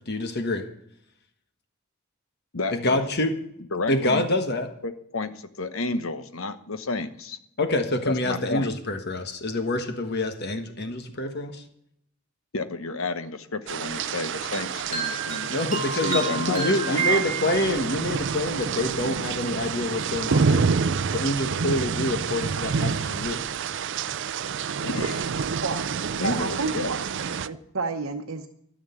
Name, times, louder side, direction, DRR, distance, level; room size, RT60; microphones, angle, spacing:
voice 1, 0.1-0.7 2.7-3.3 3.9-4.7 7.6-11.6 15.5-20.7 21.1-23.4, left 1 dB, 50° left, 6 dB, 1.4 m, -26 dB
voice 2, 2.5-3.0 3.7-4.3 4.8-7.4 8.0-8.7 12.5-15.6 15.9-17.3 24.8-25.4 26.2-26.9, left 3 dB, 75° left, 10 dB, 1.1 m, -31 dB
sound 1, 13.7-27.5, right 6 dB, 60° right, 0.5 m, -28 dB
sound 2, 14.5-18.0, right 5 dB, 40° right, 1.9 m, -30 dB
voice 3, 26.2-27.0 27.5-28.5, right 4 dB, 75° right, 4 dB, 0.9 m, -30 dB
13.5 x 6.5 x 9.3 m, 0.73 s
head